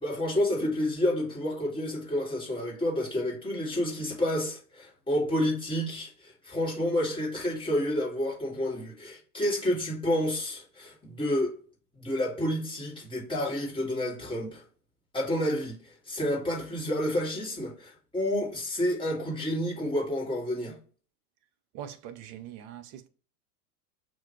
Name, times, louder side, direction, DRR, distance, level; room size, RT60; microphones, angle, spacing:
voice 1, 0.0-11.5 12.0-14.6 15.1-15.8 16.1-20.8, left 1 dB, 10° left, 1.7 m, -29 dB
voice 2, 21.7-23.1, right 10 dB, 40° right, 0.5 m, -42 dB
5.6 x 2.5 x 3.0 m
hypercardioid pair, 95°, 47 cm